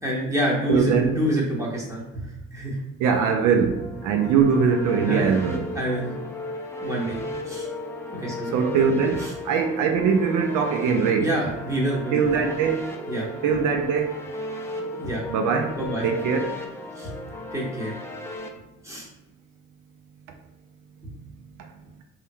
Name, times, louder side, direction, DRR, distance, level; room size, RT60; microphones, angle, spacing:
voice 1, 0.0-2.8 5.0-5.3 5.7-6.1 6.8-7.2 7.4-7.7 8.2-8.6 9.2-9.3 11.2-12.3 13.1-13.3 15.0-15.2 15.7-16.1 16.9-17.1 17.5-17.9 18.8-19.1 21.0-21.1, right 1 dB, 10° right, 1.2 m, -27 dB
voice 2, 0.7-1.1 3.0-5.7 8.5-11.3 12.1-12.9 13.4-14.2 15.3-15.8 16.0-16.5 21.6-21.7, right 6 dB, 85° right, 0.5 m, -22 dB
sound 1, 3.7-18.5, left 2 dB, 10° left, 0.4 m, -36 dB
3.4 x 3.0 x 2.2 m
cardioid pair, 90°, 30 cm